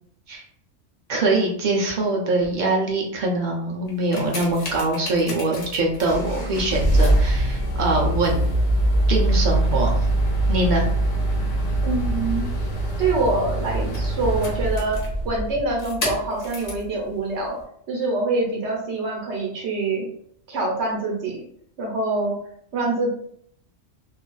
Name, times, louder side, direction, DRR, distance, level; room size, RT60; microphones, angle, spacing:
voice 1, 1.1-8.4 9.1-9.9 10.5-10.9, right 2 dB, 55° right, 0 dB, 0.6 m, -23 dB
sound 1, 3.9-16.9 17.6-17.7, right 1 dB, 45° left, 0.6 m, -23 dB
voice 2, 11.8-12.4 13.0-15.0 15.2-17.6 17.9-20.1 20.5-21.4 21.8-22.4 22.7-23.1, right 2 dB, 70° right, -2 dB, 1.0 m, -25 dB
2.5 x 2.3 x 2.2 m, 0.65 s
omnidirectional pair, 1.2 m